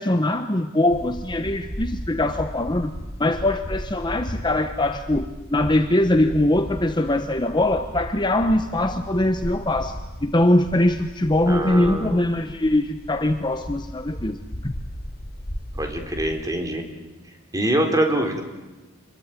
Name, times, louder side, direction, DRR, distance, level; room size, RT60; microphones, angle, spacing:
voice 1, 0.0-2.9 3.2-9.9 10.2-14.7, left 1 dB, 20° left, 8 dB, 1.0 m, -22 dB
sound 1, 0.9-16.5, equal, 45° left, 2.8 m, -36 dB
voice 2, 11.5-12.2 15.7-16.8 17.5-18.4, right 1 dB, 15° right, 4 dB, 3.7 m, -24 dB
26.5 x 22.0 x 9.1 m, 1.1 s
head